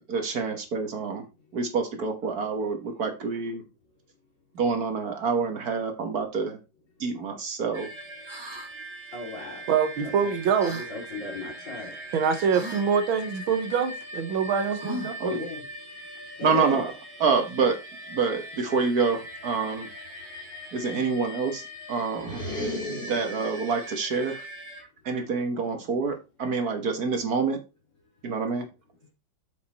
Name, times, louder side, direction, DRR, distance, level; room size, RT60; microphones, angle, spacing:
voice 1, 0.1-1.2 1.5-3.6 4.5-6.6 7.0-7.9 15.2-15.4 16.4-16.9 17.2-17.8 18.1-19.9 20.7-21.6 21.9-22.4 23.1-24.5 25.0-27.6 28.2-28.7, right 5 dB, 55° right, 1.6 m, -27 dB
sound 1, 7.7-24.8, equal, 70° right, 3.5 m, -41 dB
sound 2, 8.2-8.7 10.6-10.9 12.5-12.9 14.8-15.3, equal, 20° right, 0.8 m, -37 dB
voice 2, 9.1-9.6 10.2-10.3 10.6-11.9 15.3-15.6 16.4-16.8 20.9-21.0, left 1 dB, 65° left, 3.8 m, -36 dB
voice 3, 9.7-10.8 12.1-15.2, right 7 dB, 90° right, 1.8 m, -25 dB
sound 3, 22.2-23.8, left 1 dB, 30° left, 3.4 m, -34 dB
7.6 x 5.3 x 4.1 m
omnidirectional pair, 2.2 m